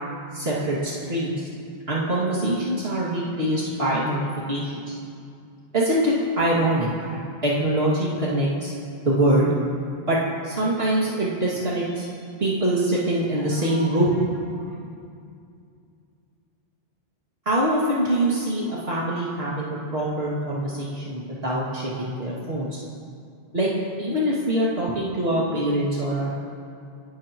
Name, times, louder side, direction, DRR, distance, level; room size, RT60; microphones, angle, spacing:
voice 1, 0.3-1.5 1.9-4.2 4.5-4.9 5.7-8.7 9.0-9.5 10.1-10.2 10.4-12.1 12.4-14.7 17.5-22.8 23.5-23.7 24.0-26.3, right 1 dB, 70° right, -7 dB, 2.6 m, -24 dB
29.5 x 13.0 x 3.0 m, 2.4 s
omnidirectional pair, 1.1 m